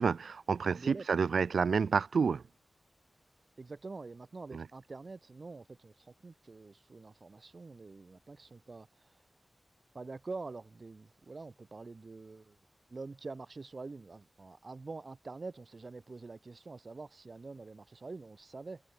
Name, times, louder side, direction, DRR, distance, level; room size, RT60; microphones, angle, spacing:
voice 1, 0.0-2.4 4.5-4.6, right 5 dB, 85° right, 0.7 m, -29 dB
voice 2, 0.7-1.1 3.6-9.2 9.9-12.6 12.9-18.8, right 3 dB, 45° right, 4.0 m, -46 dB
wide cardioid pair, 100°, 0 cm